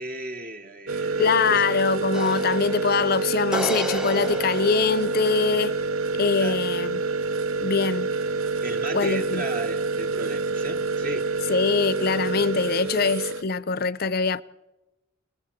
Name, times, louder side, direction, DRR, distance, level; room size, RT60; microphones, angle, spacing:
voice 1, 0.0-1.6 6.4-6.6 8.6-11.4, right 2 dB, 40° right, 0.8 m, -35 dB
sound 1, 0.9-13.4, right 3 dB, 90° right, 0.7 m, -27 dB
voice 2, 1.2-5.8 6.2-7.0 7.6-8.1 8.9-9.4 11.5-14.4, left 5 dB, 45° left, 0.6 m, -23 dB
sound 2, 2.1-5.5, equal, 5° right, 0.6 m, -33 dB
29.5 x 19.5 x 4.4 m
head